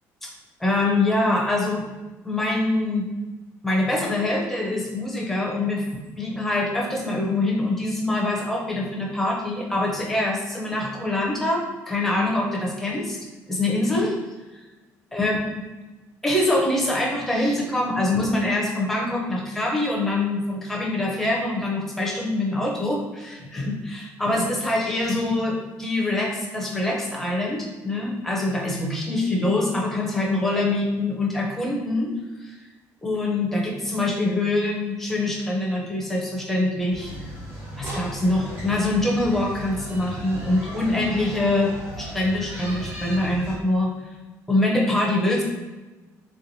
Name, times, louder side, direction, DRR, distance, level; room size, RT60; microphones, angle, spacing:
voice 1, 0.6-1.9 2.2-3.1 3.6-13.2 13.5-14.2 15.1-15.6 16.2-32.1 32.4-32.6 33.0-37.1 37.8-41.7 42.0-43.9 44.5-45.4, left 2 dB, 5° left, -2 dB, 0.5 m, -24 dB
sound 1, 36.9-43.6, equal, 40° right, 0.9 m, -36 dB
3.3 x 3.0 x 2.6 m, 1.2 s
cardioid pair, 175°, 6 cm